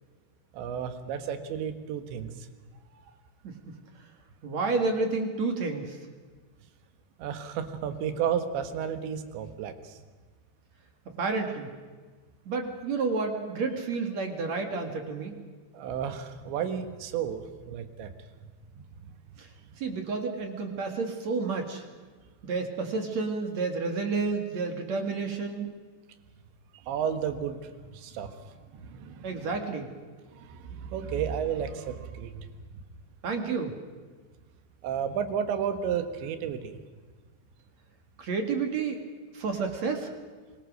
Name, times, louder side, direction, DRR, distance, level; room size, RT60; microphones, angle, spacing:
voice 1, 0.5-2.3 7.2-10.0 15.7-18.1 18.8-18.9 26.9-29.5 30.3-32.5 34.8-36.8, right 8 dB, 90° right, 9 dB, 3.8 m, -32 dB
voice 2, 4.4-6.0 11.1-11.7 12.5-15.4 19.4-19.5 19.8-21.8 22.4-25.7 29.2-29.9 33.2-33.8 38.2-39.0 39.3-40.1, right 4 dB, 50° right, 4 dB, 2.6 m, -30 dB
25.5 x 21.0 x 6.3 m, 1.5 s
omnidirectional pair, 5.0 m